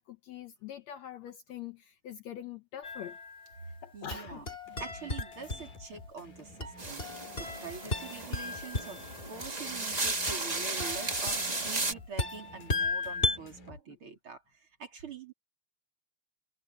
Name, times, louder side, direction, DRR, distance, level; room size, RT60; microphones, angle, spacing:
voice 1, 0.0-3.2 3.8-4.5, left 10 dB, 70° left, 1.9 m, -44 dB
sound 1, 2.8-3.7 4.1-6.1 6.6-9.2 10.3-13.4, left 2 dB, 20° left, 2.7 m, -36 dB
voice 2, 3.9-4.4 4.8-7.1 7.4-9.0 9.3-15.3, right 5 dB, 40° right, 3.9 m, -45 dB
sound 2, 4.2-13.8, left 2 dB, 85° left, 5.7 m, -51 dB
sound 3, 6.8-11.9, right 2 dB, 25° right, 0.9 m, -35 dB
omnidirectional pair, 3.7 m